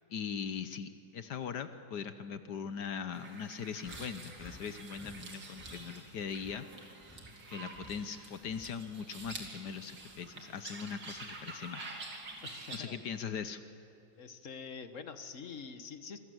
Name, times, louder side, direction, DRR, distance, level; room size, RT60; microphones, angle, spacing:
voice 1, 0.1-7.0 7.5-12.0 12.7-13.6, left 6 dB, 65° left, 11 dB, 1.5 m, -40 dB
sound 1, 3.1-12.8, right 3 dB, 75° right, 3.4 m, -48 dB
sound 2, 3.8-5.8 6.3-9.6 10.0-11.5 12.2-12.4 13.3-13.5, equal, 5° left, 2.1 m, -55 dB
voice 2, 12.4-13.0 14.2-16.2, left 5 dB, 45° left, 9 dB, 1.5 m, -45 dB
26.5 x 25.0 x 7.9 m, 2.7 s
omnidirectional pair, 2.0 m